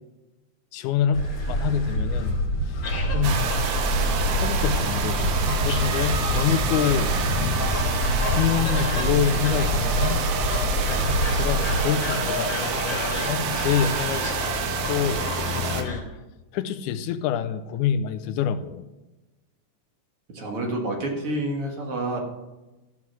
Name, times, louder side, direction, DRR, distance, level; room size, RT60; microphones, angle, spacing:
voice 1, 0.7-2.4 2.7-2.8 3.1-3.4 4.4-7.1 8.3-10.2 11.3-14.3 14.9-16.0 16.5-18.9, left 8 dB, 85° left, 10 dB, 2.1 m, -26 dB
sound 1, 1.1-11.8, equal, 60° left, 3.0 m, -26 dB
sound 2, 2.8-16.0, left 3 dB, 30° left, 3.4 m, -31 dB
sound 3, 3.2-15.8, right 7 dB, 80° right, 2.3 m, -29 dB
voice 2, 20.3-22.2, right 1 dB, 50° right, 0 dB, 2.5 m, -28 dB
14.5 x 6.0 x 6.2 m, 1.1 s
omnidirectional pair, 3.5 m